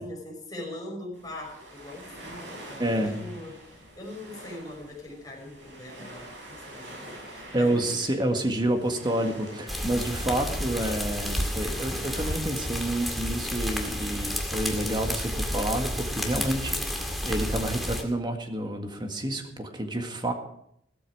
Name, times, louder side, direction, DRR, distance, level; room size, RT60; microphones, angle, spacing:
voice 1, 0.0-3.7 4.0-8.0, left 1 dB, 20° left, -1 dB, 5.7 m, -41 dB
sound 1, 1.1-12.3, right 1 dB, 75° right, 7.5 m, -46 dB
voice 2, 2.8-3.2 7.5-20.3, right 1 dB, 25° right, 4 dB, 1.8 m, -29 dB
sound 2, 9.7-18.0, equal, ahead, 2.1 m, -31 dB
16.0 x 13.5 x 4.8 m, 0.73 s
head